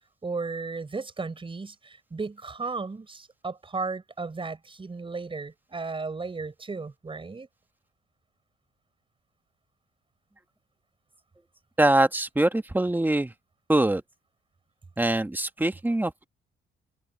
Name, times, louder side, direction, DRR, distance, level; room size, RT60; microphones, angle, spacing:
voice 1, 0.2-7.5, right 4 dB, 25° right, 4.7 m, -35 dB
voice 2, 11.8-13.3 13.7-14.0 15.0-16.3, right 1 dB, 10° right, 1.5 m, -23 dB
cardioid pair, 90°, 20 cm